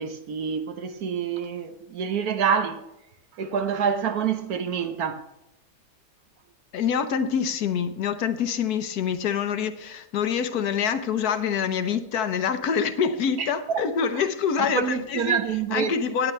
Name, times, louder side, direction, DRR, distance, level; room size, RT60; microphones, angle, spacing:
voice 1, 0.0-2.8 3.4-5.2 13.4-13.8 14.1-14.2 14.6-15.9, right 7 dB, 70° right, 1.4 m, -27 dB
voice 2, 6.7-15.4 15.7-16.3, left 7 dB, 70° left, 1.4 m, -26 dB
17.5 x 9.9 x 3.3 m
omnidirectional pair, 1.7 m